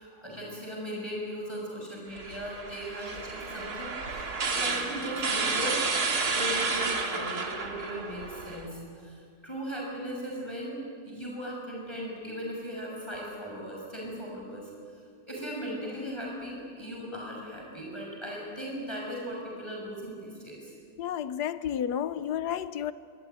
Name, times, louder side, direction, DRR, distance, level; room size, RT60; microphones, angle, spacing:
voice 1, 0.0-5.9 6.2-14.7 15.2-20.7, equal, 15° left, 6.4 m, -38 dB
sound 1, 2.2-8.7, right 4 dB, 75° right, 2.7 m, -31 dB
voice 2, 21.0-22.9, left 9 dB, 85° left, 1.4 m, -31 dB
25.0 x 23.5 x 9.3 m
omnidirectional pair, 1.7 m